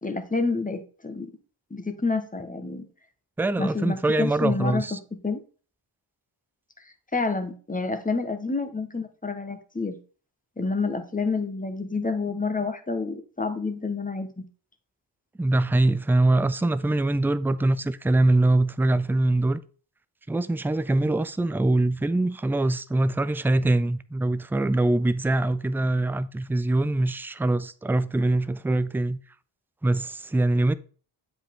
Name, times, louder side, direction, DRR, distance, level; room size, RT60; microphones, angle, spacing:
voice 1, 0.0-1.3 1.7-2.8 3.6-5.4 7.1-10.0 10.6-14.4, left 4 dB, 15° left, 1.2 m, -29 dB
voice 2, 3.4-5.0 15.4-19.6 20.3-29.2 29.8-30.7, right 2 dB, 5° right, 0.3 m, -23 dB
7.9 x 5.1 x 3.6 m
cardioid pair, 60°, 49 cm